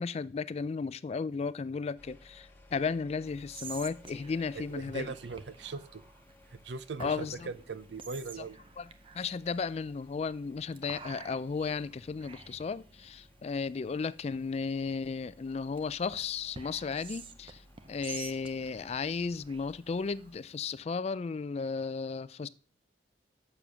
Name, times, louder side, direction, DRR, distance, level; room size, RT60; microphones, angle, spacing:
voice 1, 0.0-5.1 7.0-7.5 8.8-8.9 9.1-17.6 17.9-22.5, left 5 dB, 35° left, 0.3 m, -34 dB
sound 1, 2.0-20.4, left 1 dB, 10° left, 1.4 m, -59 dB
Whispering, 3.2-20.8, right 5 dB, 30° right, 0.6 m, -51 dB
voice 2, 4.5-6.0 6.5-8.6, right 4 dB, 75° right, 0.6 m, -40 dB
7.0 x 7.0 x 6.1 m
head